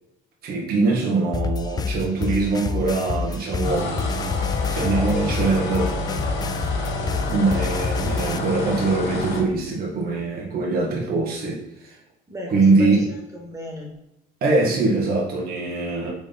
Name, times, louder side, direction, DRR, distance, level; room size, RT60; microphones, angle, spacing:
voice 1, 0.4-3.9 4.7-5.9 7.3-12.0 12.5-13.1 14.4-16.1, right 3 dB, 60° right, -2 dB, 1.9 m, -22 dB
sound 1, 1.3-8.4, left 5 dB, 25° left, 0.3 m, -27 dB
sound 2, 3.6-9.5, left 2 dB, 75° left, 1.9 m, -29 dB
voice 2, 6.7-7.3 12.3-13.9, left 1 dB, 20° right, -1 dB, 2.0 m, -36 dB
5.1 x 4.1 x 5.3 m, 0.86 s
cardioid pair, 110°, 17 cm